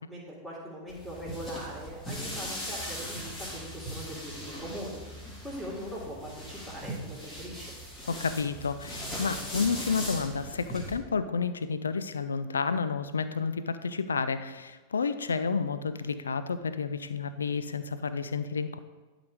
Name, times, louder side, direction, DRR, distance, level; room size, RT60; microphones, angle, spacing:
voice 1, 0.1-5.1 5.4-7.7, equal, 5° left, -10 dB, 2.5 m, -41 dB
sound 1, 0.9-11.0, equal, 25° left, 2.6 m, -39 dB
voice 2, 8.1-18.8, left 5 dB, 70° left, 12 dB, 0.4 m, -30 dB
11.5 x 4.0 x 4.8 m, 1.3 s
figure-of-eight pair, 90°, 0 cm